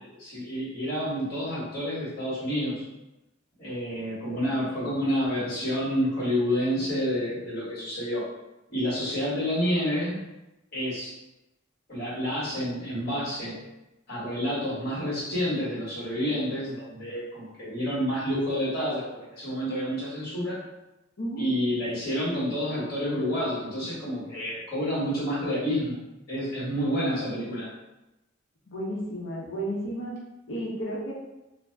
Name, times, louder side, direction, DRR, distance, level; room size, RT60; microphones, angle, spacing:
voice 1, 0.0-2.8 3.6-8.2 8.7-10.2 10.7-11.2 11.9-13.6 14.1-20.6 21.4-26.0 26.3-27.7, equal, 50° left, -9 dB, 1.4 m, -29 dB
voice 2, 21.2-21.5 28.7-30.1 30.5-31.1, right 1 dB, 70° left, -3 dB, 0.8 m, -32 dB
2.5 x 2.1 x 3.3 m, 0.97 s
head